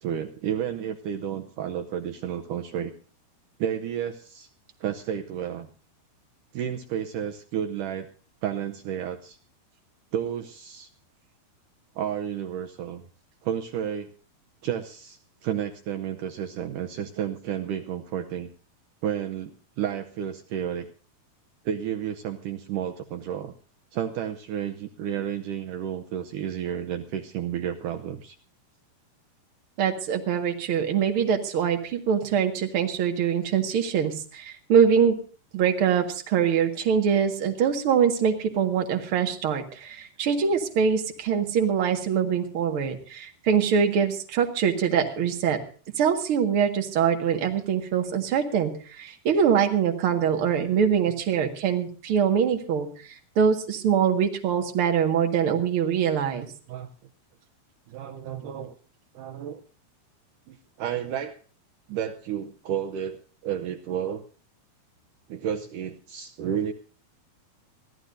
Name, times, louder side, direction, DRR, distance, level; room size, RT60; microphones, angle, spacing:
voice 1, 0.0-2.9 3.6-4.5 4.8-5.7 6.5-8.1 8.4-9.4 10.1-10.9 12.0-13.0 13.4-14.1 14.6-18.5 19.0-19.5 19.8-20.9 21.7-23.5 23.9-28.4 56.7-56.9 57.9-58.8 59.2-59.6 60.5-61.4 61.9-64.2 65.3-66.7, right 9 dB, 80° right, 5 dB, 1.9 m, -31 dB
voice 2, 29.8-35.2 35.5-45.6 46.0-52.9 53.4-56.5, right 7 dB, 50° right, 4 dB, 1.8 m, -23 dB
23.5 x 14.5 x 2.6 m, 0.39 s
omnidirectional pair, 4.7 m